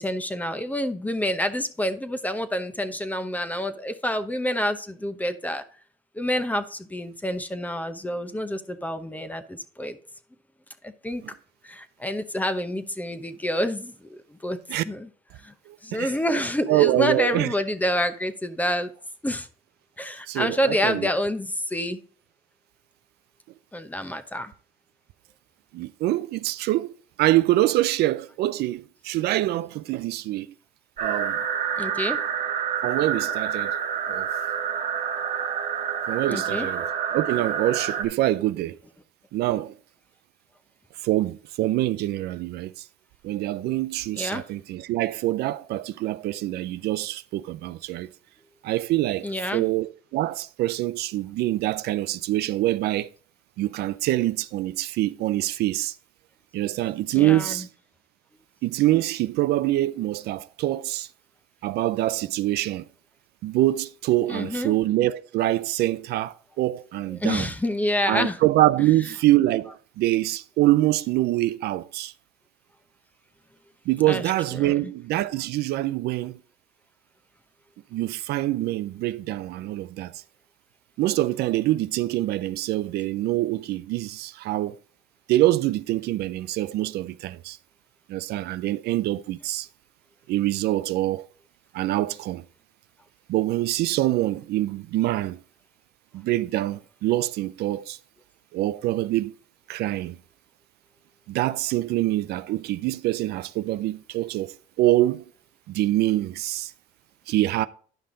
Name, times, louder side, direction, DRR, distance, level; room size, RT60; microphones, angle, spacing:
voice 1, 0.0-5.6 6.1-10.0 10.8-11.2 11.6-14.6 14.8-15.1 15.4-15.5 15.8-18.9 19.2-19.5 20.0-22.0 23.7-24.5 31.8-32.2 36.3-36.7 44.1-44.4 49.2-49.7 57.1-57.7 64.2-64.8 67.0-68.4 68.8-69.2 74.1-74.9, left 1 dB, 10° left, 0.8 m, -28 dB
voice 2, 15.7-16.1 16.7-17.5 20.3-21.1 25.7-30.5 31.0-31.4 32.8-33.7 34.1-34.3 36.1-38.8 39.3-39.7 41.0-42.9 43.2-48.1 48.6-53.1 53.6-55.9 56.5-57.7 58.6-61.1 61.6-62.9 63.4-67.5 68.1-72.1 73.9-76.4 77.9-80.2 81.0-84.8 85.3-87.6 88.1-89.7 90.3-91.3 91.7-92.4 93.3-95.4 96.1-98.0 98.5-99.3 99.7-100.2 101.3-105.2 105.7-106.7 107.3-107.7, right 15 dB, 75° right, 0.5 m, -25 dB
sound 1, 31.0-38.0, right 8 dB, 50° right, 1.7 m, -28 dB
10.0 x 5.6 x 3.8 m
cardioid pair, 110°, 17 cm